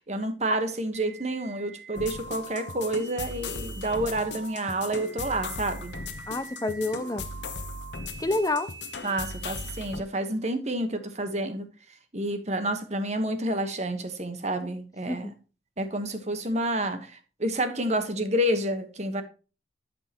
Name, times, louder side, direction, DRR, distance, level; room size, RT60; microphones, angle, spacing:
voice 1, 0.0-5.9 9.0-15.3 15.8-19.2, right 1 dB, 35° right, 1.2 m, -29 dB
sound 1, 0.9-9.9, right 4 dB, 65° right, 2.6 m, -45 dB
sound 2, 1.9-10.0, left 4 dB, 70° left, 0.9 m, -38 dB
voice 2, 6.3-7.3 8.2-8.7 15.1-15.3, left 2 dB, 20° left, 0.5 m, -28 dB
12.0 x 5.5 x 2.9 m
head